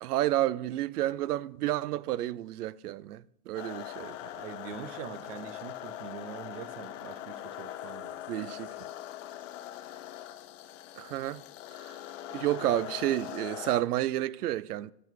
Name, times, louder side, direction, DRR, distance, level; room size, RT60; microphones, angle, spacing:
voice 1, 0.0-4.2 8.3-8.7 11.0-11.4 12.3-14.9, right 14 dB, 80° right, 0.5 m, -30 dB
sound 1, 3.5-13.8, left 12 dB, 55° left, 0.7 m, -42 dB
voice 2, 4.4-8.2, right 8 dB, 55° right, 0.9 m, -44 dB
10.0 x 6.0 x 4.5 m
hypercardioid pair, 145°, 45 cm